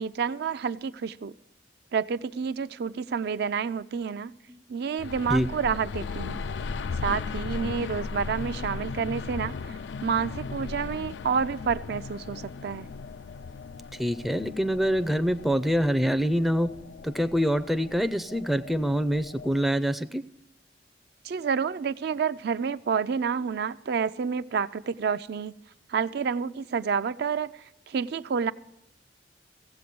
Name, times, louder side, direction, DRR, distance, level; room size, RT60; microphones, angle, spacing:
voice 1, 0.0-1.3 1.9-4.4 4.7-6.4 7.0-12.9 21.2-25.5 25.9-28.5, right 6 dB, 65° right, 12 dB, 0.4 m, -29 dB
sound 1, 5.0-19.6, left 4 dB, 85° left, 0.4 m, -37 dB
voice 2, 14.0-16.7 17.0-20.2, equal, ahead, 9 dB, 0.4 m, -25 dB
16.0 x 7.8 x 6.8 m, 0.88 s
head